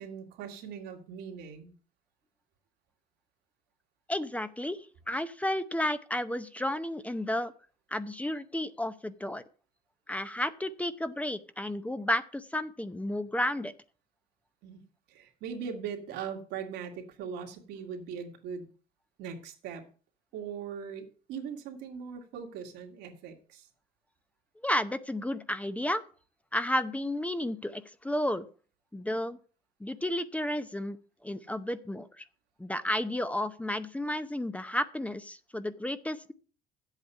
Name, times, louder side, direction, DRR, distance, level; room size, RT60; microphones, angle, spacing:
voice 1, 0.0-1.7 14.6-14.8 15.1-18.7 19.2-19.8 20.3-23.7, right 7 dB, 85° right, 3 dB, 2.1 m, -40 dB
voice 2, 4.1-7.5 7.9-9.4 10.1-13.7 24.6-26.0 26.5-28.5 28.9-29.4 29.8-31.0 31.2-32.2 32.6-36.3, left 1 dB, 10° left, 12 dB, 0.7 m, -32 dB
9.9 x 8.1 x 5.6 m, 0.39 s
cardioid pair, 110°, 17 cm